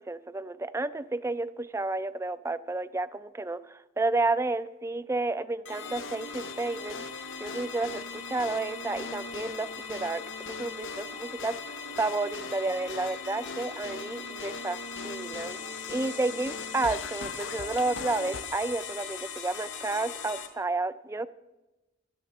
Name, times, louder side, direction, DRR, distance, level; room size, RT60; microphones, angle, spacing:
voice 1, 0.0-10.2 10.5-14.8 15.0-15.6 15.9-21.3, right 2 dB, 15° right, 15 dB, 0.4 m, -31 dB
sound 1, 5.7-18.4, left 3 dB, 85° left, 0.7 m, -42 dB
sound 2, 5.7-20.5, left 6 dB, 65° left, 1.8 m, -40 dB
11.5 x 9.5 x 7.1 m, 1.1 s
head